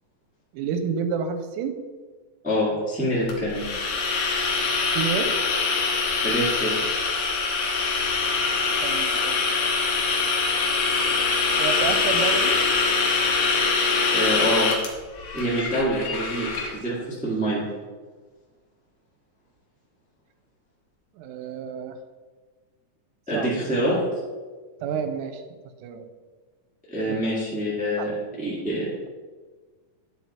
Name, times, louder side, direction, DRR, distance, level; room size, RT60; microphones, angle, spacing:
voice 1, 0.5-1.8 4.9-5.3 8.8-9.5 11.6-12.5 21.2-22.0 23.3-23.5 24.8-25.4 25.8-26.1 27.1-27.2 28.0-28.1, right 7 dB, 90° right, 9 dB, 2.1 m, -29 dB
voice 2, 2.4-3.7 6.2-6.7 14.1-14.7 15.3-17.6 23.3-24.0 26.9-28.9, equal, 5° right, -8 dB, 1.1 m, -26 dB
sound 1, 3.3-16.7, left 4 dB, 70° left, 2.1 m, -24 dB
9.1 x 3.9 x 4.3 m, 1.4 s
omnidirectional pair, 3.6 m